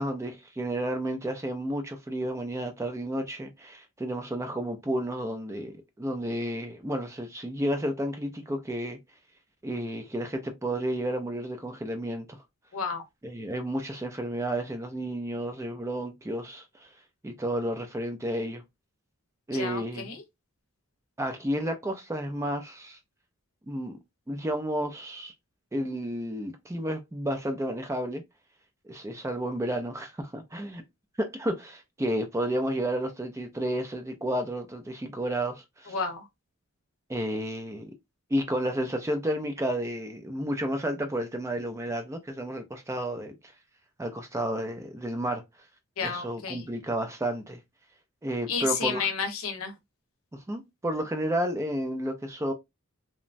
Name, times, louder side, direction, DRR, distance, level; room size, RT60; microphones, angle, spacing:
voice 1, 0.0-9.0 9.6-12.4 13.2-16.9 17.2-18.6 19.5-20.1 21.2-23.0 23.7-24.0 24.3-25.3 25.7-28.2 28.8-30.8 31.2-35.9 37.1-37.9 38.3-43.3 44.0-45.4 46.0-47.6 48.2-49.0 50.3-52.5, right 1 dB, 15° right, 0.3 m, -31 dB
voice 2, 12.7-13.0 19.5-20.2 35.9-36.2 46.0-46.7 48.5-49.7, left 5 dB, 65° left, 0.7 m, -31 dB
3.0 x 2.1 x 2.5 m
head